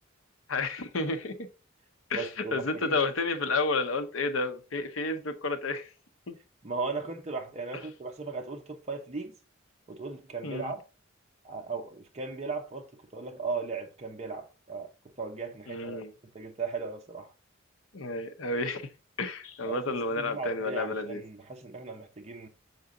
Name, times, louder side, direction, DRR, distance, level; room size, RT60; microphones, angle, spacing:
voice 1, 0.5-1.5 2.1-5.9 6.3-6.4 10.4-10.7 15.7-16.1 17.9-18.9 19.2-21.2, left 3 dB, 75° left, 0.8 m, -31 dB
voice 2, 2.1-3.0 6.6-9.3 9.9-10.8 11.4-12.9 13.1-14.9 15.2-16.0 16.3-17.3 19.6-22.5, right 4 dB, 35° right, 0.7 m, -37 dB
6.7 x 4.1 x 3.7 m
head